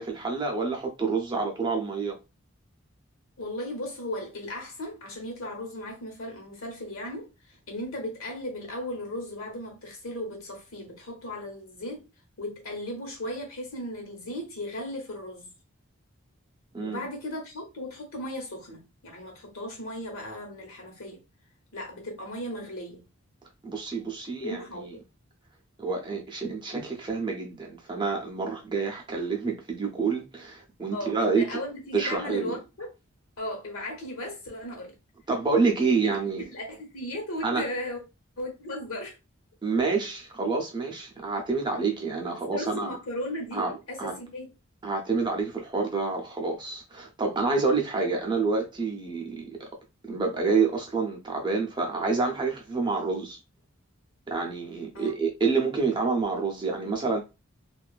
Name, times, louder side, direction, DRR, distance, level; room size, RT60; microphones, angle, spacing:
voice 1, 0.0-2.2 16.7-17.0 23.6-24.9 25.8-31.6 31.9-32.6 35.3-36.5 37.4-37.7 39.6-42.9 43.5-44.2 44.8-49.7 50.0-53.4 54.3-57.2, right 4 dB, 20° right, 0.5 m, -28 dB
voice 2, 3.4-7.3 7.7-12.1 12.4-15.5 16.8-21.2 21.7-23.0 24.4-24.9 30.9-32.9 33.4-34.9 35.9-38.0 38.4-39.2 42.3-44.5 54.9-55.2, left 1 dB, 80° left, 1.0 m, -36 dB
2.6 x 2.3 x 2.2 m
head